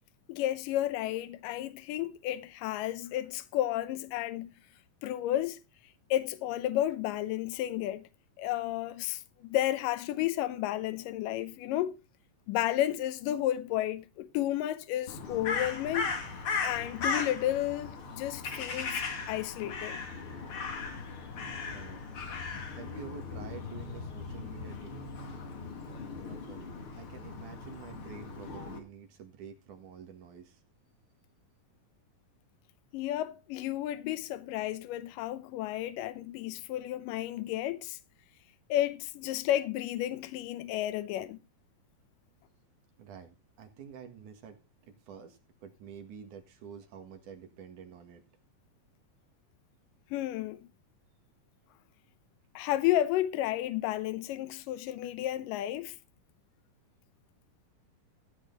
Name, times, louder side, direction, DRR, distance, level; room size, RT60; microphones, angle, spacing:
voice 1, 0.3-4.5 5.0-5.6 6.1-8.1 8.4-12.0 12.5-16.1 16.6-20.0 32.9-38.0 38.7-41.4 50.1-50.6 52.6-56.0, left 13 dB, 85° left, 2.4 m, -32 dB
Crow, 15.1-28.8, left 4 dB, 45° left, 2.5 m, -37 dB
voice 2, 21.7-22.0 22.7-24.9 26.3-26.7 27.0-30.6 43.0-44.6 45.1-48.2, right 7 dB, 65° right, 3.3 m, -48 dB
15.0 x 8.2 x 3.9 m
omnidirectional pair, 3.8 m